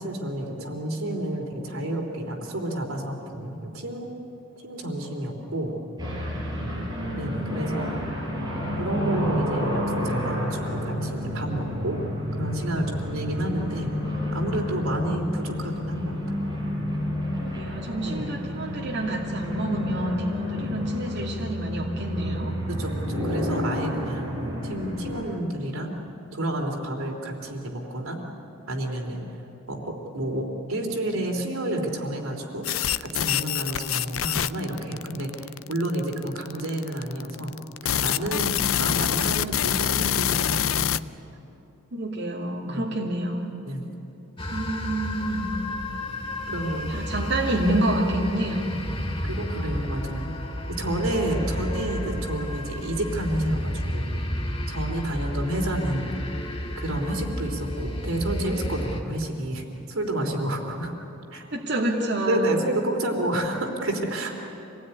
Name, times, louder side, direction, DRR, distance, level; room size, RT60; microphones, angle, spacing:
voice 1, 0.0-4.1 4.6-5.7 7.1-7.9 8.7-12.0 12.4-13.9 14.3-16.2 18.0-18.3 22.7-26.0 26.3-28.2 28.7-29.3 29.7-32.7 33.0-37.6 37.8-41.0 42.6-42.9 43.6-43.9 45.9-46.0 46.5-46.9 49.2-50.3 50.8-54.2 54.7-56.1 56.7-60.9 61.3-61.5 62.3-64.3, right 1 dB, 80° right, 2 dB, 3.3 m, -30 dB
sound 1, 6.0-25.2, left 1 dB, 20° right, 6.1 m, -30 dB
voice 2, 17.4-22.5 41.9-43.5 44.5-45.5 46.9-48.6 61.5-62.6, right 1 dB, 55° right, -3 dB, 2.6 m, -28 dB
sound 2, 32.6-41.0, left 10 dB, 75° left, 0.5 m, -25 dB
sound 3, 44.4-59.0, left 1 dB, 25° left, 2.2 m, -32 dB
27.0 x 19.0 x 9.8 m, 2.9 s
head